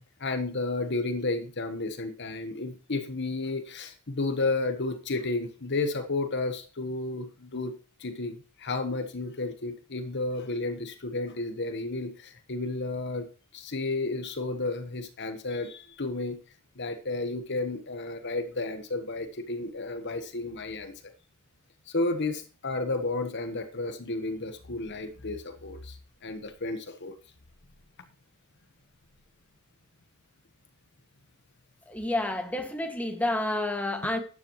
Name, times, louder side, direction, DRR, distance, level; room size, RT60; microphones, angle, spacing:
voice 1, 0.2-7.7 8.0-13.3 13.5-16.4 16.8-20.9 21.9-26.0 26.2-27.1, left 2 dB, 55° left, 8 dB, 1.2 m, -32 dB
voice 2, 31.9-34.2, left 1 dB, 5° left, 4 dB, 1.9 m, -29 dB
12.5 x 9.8 x 3.1 m, 0.37 s
head